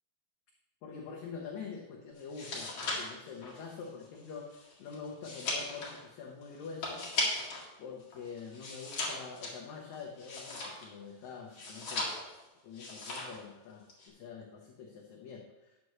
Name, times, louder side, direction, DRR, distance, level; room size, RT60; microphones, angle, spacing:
voice 1, 0.8-7.1 7.8-12.1 12.6-15.8, left 5 dB, 65° left, -1 dB, 2.2 m, -45 dB
sound 1, 2.2-7.7 8.0-11.0 11.5-12.4 12.7-13.4 13.7-14.1, left 2 dB, 45° left, 2.8 m, -38 dB
12.5 x 9.6 x 3.1 m, 1.0 s
omnidirectional pair, 3.9 m